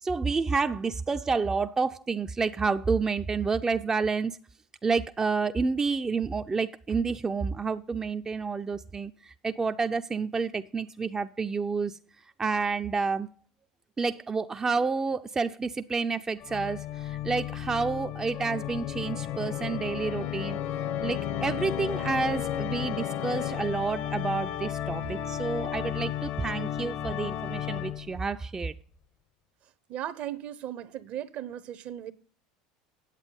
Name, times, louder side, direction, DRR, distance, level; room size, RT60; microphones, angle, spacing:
voice 1, 0.0-4.4 4.8-12.0 12.4-13.3 14.0-20.6 21.0-28.7, right 4 dB, 20° right, 0.5 m, -29 dB
Organ, 16.4-28.2, left 11 dB, 55° left, 0.9 m, -33 dB
voice 2, 29.9-32.1, right 11 dB, 50° right, 0.8 m, -37 dB
9.0 x 8.0 x 5.4 m
hypercardioid pair, 80°, 3 cm